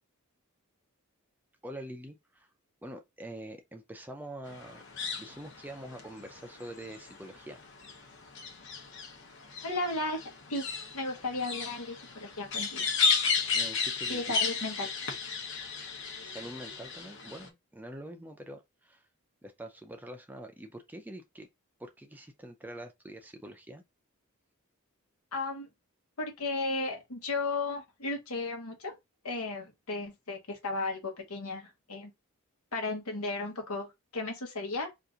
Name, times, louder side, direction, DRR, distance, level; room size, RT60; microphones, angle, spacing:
voice 1, 1.6-2.5 2.8-4.8 5.2-7.6 13.5-14.2 16.2-19.0 19.4-21.5 21.8-23.8, right 1 dB, 10° right, 0.4 m, -45 dB
sound 1, 4.5-17.5, left 5 dB, 55° left, 0.9 m, -34 dB
voice 2, 9.6-12.9 14.1-14.9 25.3-25.7 26.2-28.9 29.2-32.1 32.7-34.9, left 2 dB, 85° left, 1.1 m, -35 dB
2.8 x 2.5 x 3.6 m
head